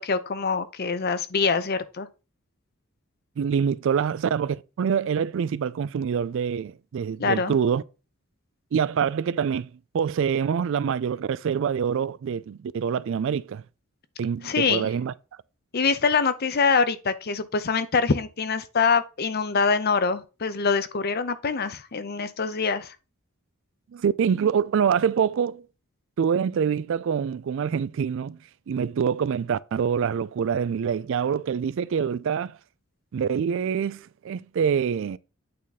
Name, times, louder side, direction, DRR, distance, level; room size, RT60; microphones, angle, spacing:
voice 1, 0.0-2.1 7.2-7.5 14.4-14.9 15.7-22.9, left 5 dB, 50° left, 0.6 m, -24 dB
voice 2, 3.4-7.8 8.7-13.6 14.2-15.1 23.9-25.7 26.2-28.4 28.7-32.6 33.1-35.2, right 7 dB, 60° right, 0.3 m, -25 dB
8.6 x 3.5 x 4.1 m
head